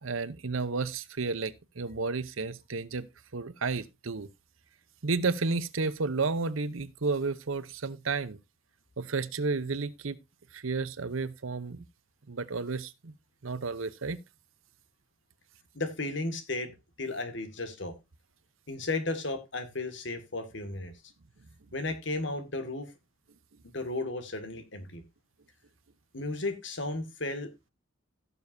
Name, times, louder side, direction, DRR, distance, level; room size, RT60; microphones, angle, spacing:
voice 1, 0.0-3.1 3.3-4.3 5.0-8.4 9.0-10.2 10.5-11.8 12.3-13.1 13.4-14.2, right 4 dB, 80° right, 0.8 m, -32 dB
voice 2, 15.7-16.7 17.0-17.9 18.7-20.9 21.7-22.9 23.7-25.0 26.1-27.7, left 2 dB, 60° left, 2.0 m, -34 dB
16.5 x 7.0 x 2.7 m
head